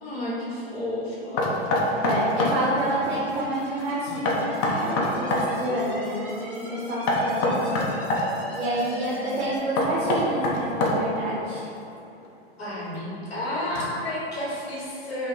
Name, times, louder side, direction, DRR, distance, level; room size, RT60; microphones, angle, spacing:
voice 1, 0.0-1.6 8.8-9.4 12.6-15.3, left 1 dB, 75° left, -7 dB, 1.1 m, -32 dB
Knock, 1.4-2.6 4.3-5.5 7.1-8.3 9.8-11.2, left 2 dB, 30° left, 0.4 m, -24 dB
sound 1, 1.6-9.6, left 1 dB, 5° right, 0.8 m, -40 dB
voice 2, 2.0-7.9 8.5-11.7, right 1 dB, 90° right, -6 dB, 0.6 m, -28 dB
2.7 x 2.0 x 3.4 m, 2.7 s
hypercardioid pair, 110°, 31 cm